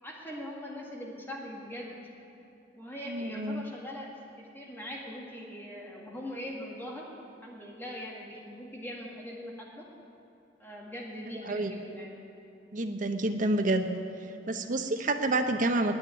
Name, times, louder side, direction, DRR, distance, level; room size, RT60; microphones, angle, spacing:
voice 1, 0.0-2.0 2.7-4.1 4.4-7.1 7.4-9.9 10.6-12.1, left 1 dB, 10° left, -3 dB, 1.8 m, -41 dB
voice 2, 3.1-3.6 11.4-11.7 12.7-13.9 14.5-15.9, right 2 dB, 45° right, 6 dB, 0.8 m, -28 dB
9.7 x 8.7 x 9.8 m, 2.7 s
head